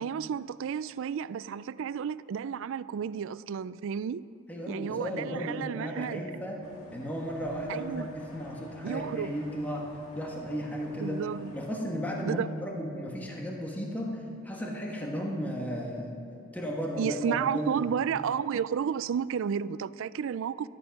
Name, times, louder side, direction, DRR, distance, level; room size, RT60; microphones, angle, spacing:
voice 1, 0.0-4.2 4.7-6.2 7.7-8.1 8.8-9.4 11.0-11.5 12.2-12.5 17.0-20.7, right 7 dB, 60° right, 0.3 m, -32 dB
voice 2, 4.5-6.6 6.9-9.9 10.1-11.2 11.5-16.1 16.5-17.8, equal, 5° left, 1.4 m, -34 dB
sound 1, 6.6-11.8, left 1 dB, 75° left, 1.8 m, -51 dB
14.0 x 12.0 x 5.9 m
head